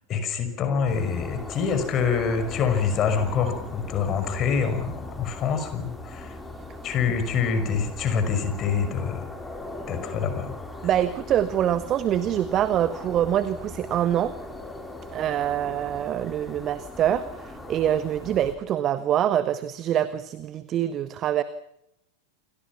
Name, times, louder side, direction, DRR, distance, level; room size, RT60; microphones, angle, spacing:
voice 1, 0.1-6.4 6.8-9.3 9.9-10.5, left 6 dB, 30° left, 8 dB, 5.9 m, -26 dB
sound 1, 0.9-18.5, left 2 dB, 5° left, 4.9 m, -40 dB
voice 2, 10.8-14.3 15.1-21.4, right 11 dB, 30° right, 13 dB, 1.4 m, -25 dB
28.5 x 23.0 x 6.1 m, 0.78 s
figure-of-eight pair, 90°, 0 cm